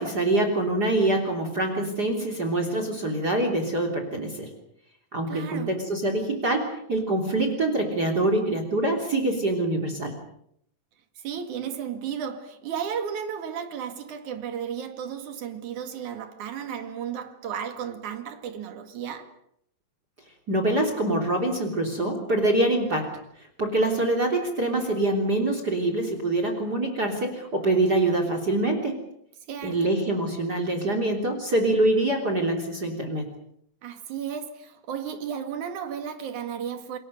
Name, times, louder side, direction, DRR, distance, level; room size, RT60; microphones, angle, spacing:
voice 1, 0.0-4.5 5.1-10.1 20.5-29.0 29.6-33.3, right 2 dB, 30° right, 3.5 m, -25 dB
voice 2, 5.3-5.8 11.2-19.3 29.5-29.9 33.8-37.0, right 8 dB, 60° right, 3.4 m, -34 dB
29.5 x 21.5 x 6.6 m
omnidirectional pair, 4.0 m